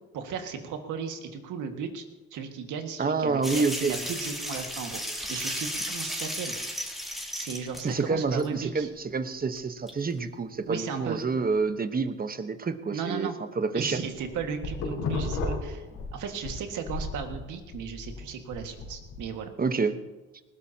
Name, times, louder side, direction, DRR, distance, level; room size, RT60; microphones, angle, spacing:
voice 1, 0.1-2.0 2.3-6.7 7.3-8.9 10.7-11.2 12.9-13.4 13.7-15.8 16.1-19.5, right 6 dB, 85° right, 5 dB, 1.9 m, -35 dB
voice 2, 3.0-3.9 7.8-13.3 13.6-14.0 19.6-20.0, right 4 dB, 30° right, 10 dB, 1.1 m, -28 dB
sound 1, 3.4-7.9 8.4-8.5 9.6-9.7 9.9-10.0, equal, ahead, 2.9 m, -34 dB
sound 2, 14.2-16.5 16.9-19.3, left 3 dB, 85° left, 4.7 m, -33 dB
19.5 x 17.0 x 2.9 m, 1.2 s
cardioid pair, 90°, 30 cm